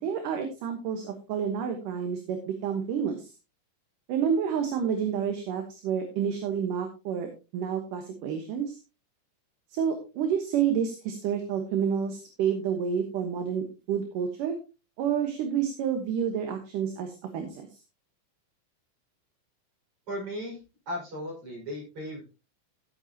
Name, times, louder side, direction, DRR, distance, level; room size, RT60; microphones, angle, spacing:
voice 1, 0.0-3.3 4.1-7.3 7.5-8.8 9.7-14.6 15.0-17.7, right 7 dB, 70° right, 5 dB, 2.7 m, -29 dB
voice 2, 20.1-20.6 20.9-22.2, equal, 35° right, -1 dB, 6.2 m, -36 dB
14.5 x 8.0 x 2.9 m, 0.29 s
omnidirectional pair, 4.2 m